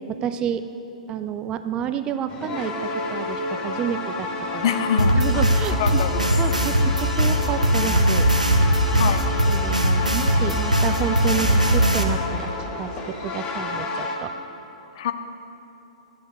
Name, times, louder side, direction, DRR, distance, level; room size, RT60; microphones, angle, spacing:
voice 1, 0.1-0.6 1.1-4.7 5.2-5.8 6.4-8.3 9.0-9.1 9.5-14.3, right 8 dB, 20° right, 11 dB, 0.4 m, -30 dB
sound 1, 2.3-14.2, left 3 dB, 25° left, 1.1 m, -30 dB
voice 2, 4.6-5.5 5.8-6.3 8.9-9.2 15.0-15.1, left 8 dB, 45° left, 9 dB, 0.6 m, -25 dB
sound 2, 5.0-12.0, right 1 dB, 90° right, 0.8 m, -20 dB
10.0 x 7.9 x 6.2 m, 2.9 s
figure-of-eight pair, 110°, 4 cm